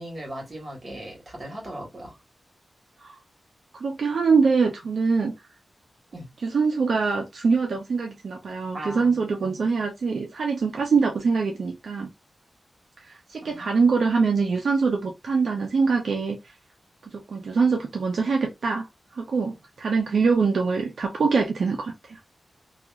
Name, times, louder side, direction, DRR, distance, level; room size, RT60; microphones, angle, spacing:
voice 1, 0.0-2.1 6.1-6.3 8.7-9.6 13.4-14.0, right 1 dB, 45° right, 1.6 m, -39 dB
voice 2, 3.8-5.3 6.4-12.1 13.3-16.4 17.1-18.9 19.1-22.2, right 4 dB, 80° right, 0.5 m, -23 dB
2.8 x 2.4 x 2.2 m
wide cardioid pair, 100°, 0 cm